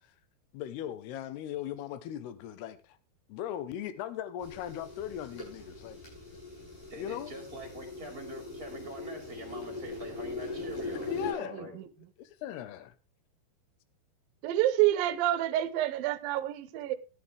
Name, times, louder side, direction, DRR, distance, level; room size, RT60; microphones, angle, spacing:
voice 1, 0.5-3.0 3.3-6.0 7.0-7.3 10.4-10.5 11.1-11.7 12.2-12.9, left 10 dB, 90° left, 2.9 m, -38 dB
sound 1, 4.4-11.3, left 3 dB, 55° left, 9.4 m, -41 dB
voice 2, 6.9-11.8, right 1 dB, 25° right, 2.5 m, -44 dB
voice 3, 11.5-11.9 14.4-17.0, right 13 dB, 75° right, 2.3 m, -28 dB
13.0 x 11.5 x 3.3 m
omnidirectional pair, 4.6 m